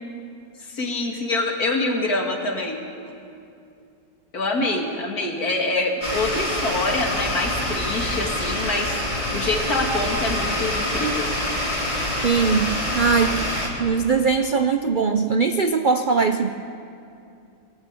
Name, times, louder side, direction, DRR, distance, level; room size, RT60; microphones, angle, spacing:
voice 1, 0.6-2.8 4.3-11.3, left 2 dB, 60° left, 1 dB, 2.9 m, -25 dB
sound 1, 6.0-13.7, left 1 dB, 25° left, 3.9 m, -26 dB
voice 2, 12.2-13.4 13.8-16.5, right 5 dB, 90° right, 7 dB, 0.4 m, -21 dB
22.5 x 17.5 x 8.3 m, 2.5 s
omnidirectional pair, 1.8 m